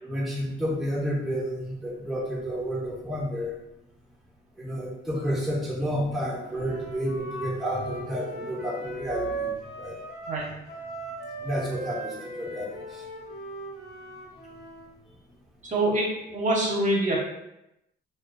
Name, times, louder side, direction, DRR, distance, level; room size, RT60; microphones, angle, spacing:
voice 1, 0.0-3.5 4.6-9.5 9.8-9.9 11.4-12.8, equal, ahead, -5 dB, 0.6 m, -30 dB
Wind instrument woodwind instrument, 6.5-14.9, right 3 dB, 55° left, 0.6 m, -38 dB
voice 2, 15.6-17.2, right 1 dB, 40° right, -3 dB, 0.7 m, -25 dB
2.2 x 2.2 x 2.5 m, 0.88 s
cardioid pair, 90°, 20 cm